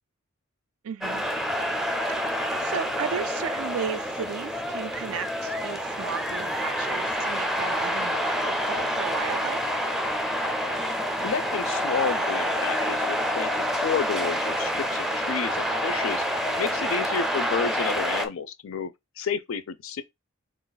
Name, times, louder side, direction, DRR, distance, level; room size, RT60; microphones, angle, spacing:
voice 1, 0.8-1.2 2.2-9.7, right 7 dB, 75° right, 0.4 m, -35 dB
sound 1, 1.0-18.3, equal, ahead, 0.4 m, -28 dB
voice 2, 10.8-20.0, left 6 dB, 70° left, 0.5 m, -31 dB
3.9 x 2.4 x 3.9 m
head